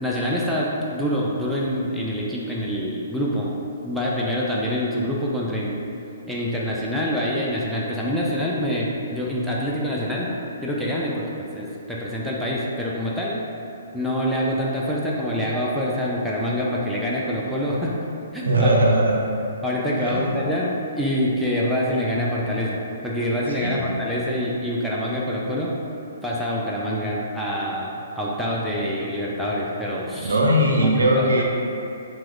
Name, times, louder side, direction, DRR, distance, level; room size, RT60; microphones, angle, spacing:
voice 1, 0.0-3.5 3.8-5.8 6.3-10.3 10.6-13.4 13.9-17.9 18.3-18.7 19.6-20.7 21.0-25.7 26.2-30.4 30.8-31.3, equal, ahead, -7 dB, 0.3 m, -26 dB
voice 2, 18.5-19.2 20.0-20.4 23.6-23.8 30.1-31.4, right 1 dB, 80° right, -1 dB, 0.4 m, -19 dB
2.9 x 2.0 x 3.7 m, 2.7 s
hypercardioid pair, 135°, 0 cm